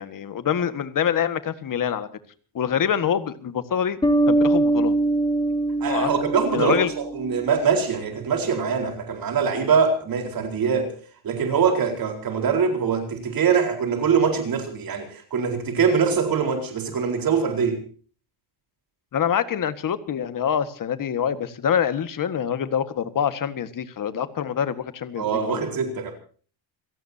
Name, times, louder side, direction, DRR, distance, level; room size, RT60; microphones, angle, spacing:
voice 1, 0.0-2.1 2.5-4.0 4.3-5.0 5.9-6.1 6.5-6.9 19.1-25.7, left 8 dB, 40° left, 1.8 m, -25 dB
Bass guitar, 4.0-7.5, right 2 dB, 10° left, 2.0 m, -22 dB
voice 2, 5.8-10.9 11.2-17.8 25.2-26.1, right 6 dB, 45° right, 4.5 m, -23 dB
29.0 x 17.5 x 2.8 m
cardioid pair, 155°, 48 cm